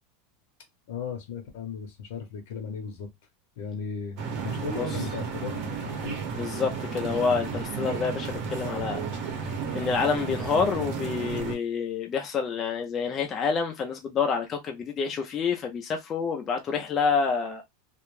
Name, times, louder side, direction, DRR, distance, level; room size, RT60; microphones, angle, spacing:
voice 1, 0.9-3.1 3.6-6.2, left 5 dB, 65° left, 0.7 m, -36 dB
sound 1, 4.2-11.6, right 6 dB, 40° right, 0.8 m, -33 dB
voice 2, 6.3-9.0 9.7-17.6, left 5 dB, 20° left, 0.3 m, -28 dB
2.3 x 2.1 x 3.0 m
supercardioid pair, 175°, 0 cm